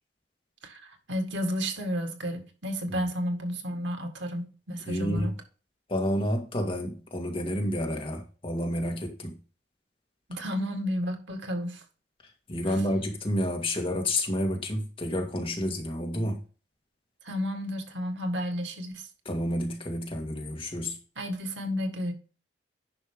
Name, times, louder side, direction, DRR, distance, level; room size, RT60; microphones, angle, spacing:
voice 1, 0.6-5.3 10.3-11.8 17.2-19.1 21.2-22.1, equal, 85° right, 1.9 m, -32 dB
voice 2, 4.9-5.3 5.9-9.4 12.5-16.4 19.3-21.0, left 1 dB, 30° left, 1.9 m, -30 dB
10.5 x 5.5 x 3.7 m
head